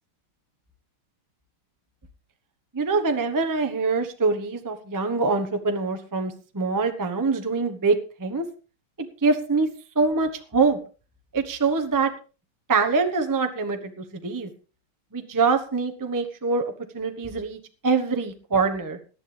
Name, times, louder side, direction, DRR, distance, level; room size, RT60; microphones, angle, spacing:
voice 1, 2.7-8.4 9.2-9.7 9.9-10.8 11.3-12.1 12.7-14.5 15.1-19.0, right 4 dB, 15° right, 6 dB, 0.6 m, -24 dB
18.0 x 11.5 x 3.4 m, 0.35 s
omnidirectional pair, 2.3 m